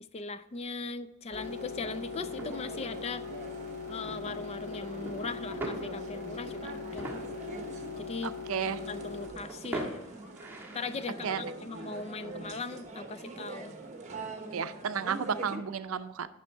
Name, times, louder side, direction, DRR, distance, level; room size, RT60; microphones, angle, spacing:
voice 1, 0.1-3.2 3.9-7.2 8.0-8.3 8.8-10.1 10.7-13.8, left 4 dB, 30° left, 13 dB, 0.4 m, -39 dB
sound 1, 1.3-9.3, left 6 dB, 90° left, 2.9 m, -41 dB
sound 2, 1.3-15.6, right 3 dB, 35° right, 1.1 m, -44 dB
sound 3, 1.8-12.9, right 1 dB, 10° right, 1.6 m, -45 dB
voice 2, 8.2-8.8 11.2-11.5 14.5-16.3, right 6 dB, 75° right, 12 dB, 0.5 m, -33 dB
9.4 x 6.3 x 4.5 m, 1.0 s
head